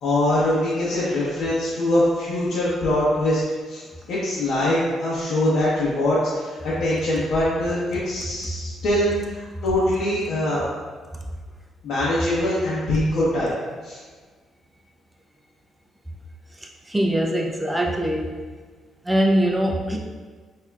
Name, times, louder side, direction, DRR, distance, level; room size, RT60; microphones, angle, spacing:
voice 1, 0.0-3.4 3.7-3.8 4.1-10.7 11.8-13.5 13.8-14.0, left 1 dB, 75° left, -10 dB, 1.1 m, -23 dB
voice 2, 16.9-18.3 19.0-20.0, equal, 10° right, 0 dB, 0.5 m, -22 dB
5.8 x 2.8 x 2.4 m, 1.5 s
cardioid pair, 90°, 0 cm